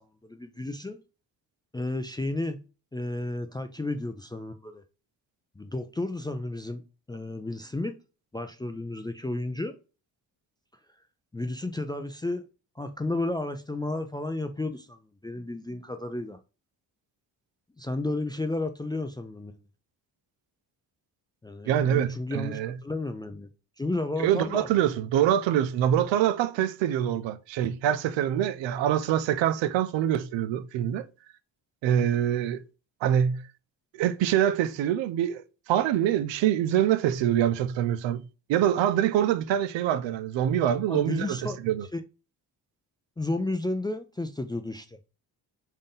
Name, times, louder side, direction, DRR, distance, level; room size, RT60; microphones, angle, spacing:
voice 1, 0.2-1.0 1.7-2.6 2.9-4.8 5.6-6.8 7.1-7.9 8.3-9.8 11.3-12.4 12.8-15.0 15.2-16.4 17.8-19.5 21.4-23.5 23.8-24.7 40.9-41.6 41.9-42.0 43.2-45.0, left 2 dB, 10° left, 0.3 m, -32 dB
voice 2, 21.7-22.8 24.2-31.0 31.8-32.6 33.0-33.5 33.9-35.4 35.7-38.2 38.5-41.9, right 10 dB, 70° right, 0.6 m, -25 dB
3.7 x 2.7 x 3.6 m
supercardioid pair, 60°, 46 cm